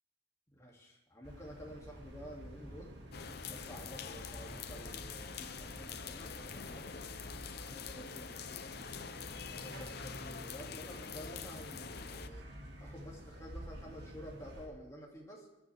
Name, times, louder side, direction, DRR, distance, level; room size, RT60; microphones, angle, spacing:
voice 1, 0.5-2.9 3.4-7.0 7.6-9.2 9.5-12.4 12.8-15.5, equal, 15° left, -2 dB, 2.6 m, -51 dB
sound 1, 1.2-14.7, equal, 55° right, 2.4 m, -50 dB
sound 2, 3.1-12.3, left 6 dB, 50° left, 0.7 m, -45 dB
22.5 x 11.0 x 3.6 m, 1.0 s
head